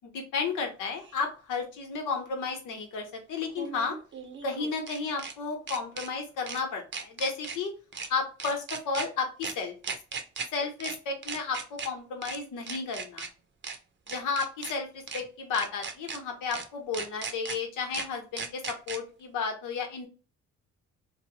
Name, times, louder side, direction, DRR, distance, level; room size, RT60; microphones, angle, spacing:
voice 1, 0.0-4.0 4.4-7.7 8.1-9.7 10.1-10.2 10.5-13.3 14.1-20.1, left 4 dB, 90° left, 3 dB, 1.0 m, -33 dB
sound 1, 1.0-1.1 3.5-5.3 5.7-6.1 6.5-6.6 6.9-7.6 7.9-8.1 8.4-9.1 9.4-9.5 9.8-10.5 10.8-11.0 11.2-11.9 12.2-12.4 12.7-13.3 13.6-13.8 14.1-14.7 15.1-15.2 15.5-16.2 16.5-16.6 16.9-17.6 17.9-18.1 18.4-19.0, right 5 dB, 40° right, 0.6 m, -37 dB
2.8 x 2.0 x 2.8 m, 0.35 s
cardioid pair, 90°, 30 cm